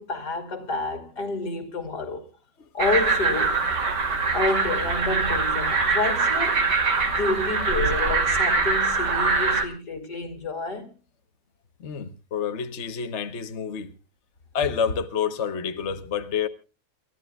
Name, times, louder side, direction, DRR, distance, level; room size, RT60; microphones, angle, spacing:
voice 1, 0.0-2.3 2.7-3.6 4.3-6.7 7.0-10.9, left 3 dB, 65° left, 3.2 m, -29 dB
sound 1, 2.8-9.6, right 4 dB, 75° right, 3.1 m, -23 dB
voice 2, 11.8-13.9 14.5-16.5, left 7 dB, 45° left, 1.2 m, -28 dB
29.0 x 14.0 x 2.3 m
omnidirectional pair, 1.9 m